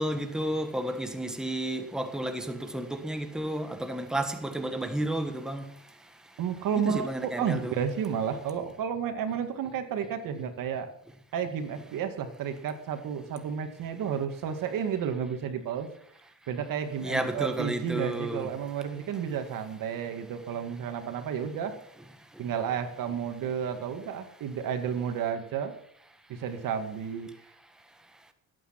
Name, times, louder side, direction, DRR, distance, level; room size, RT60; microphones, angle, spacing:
voice 1, 0.0-5.7 6.7-7.8 17.0-18.5, right 1 dB, ahead, 1.4 m, -31 dB
voice 2, 6.4-10.9 11.3-15.9 16.5-21.7 22.4-25.7 26.3-27.3, right 7 dB, 70° right, 2.1 m, -32 dB
18.0 x 8.8 x 5.9 m
cardioid pair, 120°, 34 cm